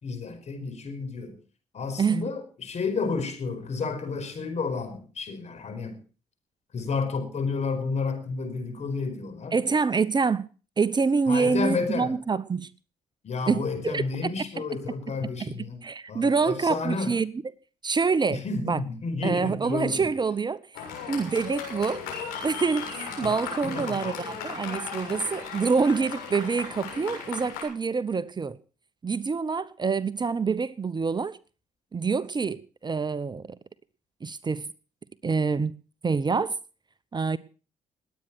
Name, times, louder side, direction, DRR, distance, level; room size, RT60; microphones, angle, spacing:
voice 1, 0.0-1.4 1.7-6.0 6.7-9.6 11.3-12.2 13.2-15.8 16.1-17.1 18.3-20.1 23.2-23.3 23.6-24.4, left 4 dB, 50° left, 5.0 m, -31 dB
voice 2, 9.5-10.5 10.8-12.7 13.5-14.3 15.4-17.3 17.8-18.8 19.2-20.8 21.1-22.0 22.4-28.6 29.0-31.4 31.9-33.5 34.2-34.7 35.2-35.7 36.0-36.5 37.1-37.4, right 5 dB, 30° right, 0.8 m, -26 dB
Fireworks, 20.7-27.6, left 6 dB, 90° left, 7.3 m, -36 dB
20.0 x 9.1 x 6.1 m
supercardioid pair, 65°, 15 cm